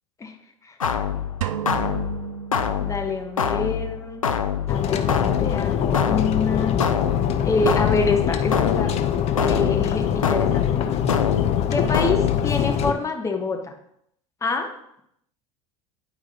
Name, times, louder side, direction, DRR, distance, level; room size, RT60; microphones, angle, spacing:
sound 1, 0.8-12.8, left 7 dB, 85° left, 0.5 m, -26 dB
sound 2, 1.4-3.4, right 9 dB, 75° right, 0.4 m, -32 dB
voice 1, 2.8-4.2 4.7-5.1 5.4-6.7 7.4-8.9 9.4-10.8 11.7-13.7 14.4-14.7, left 3 dB, 20° left, 3 dB, 1.1 m, -26 dB
sound 3, 4.7-12.9, left 9 dB, 40° left, 0.6 m, -23 dB
9.5 x 4.7 x 2.8 m, 0.74 s
figure-of-eight pair, 75°, 17 cm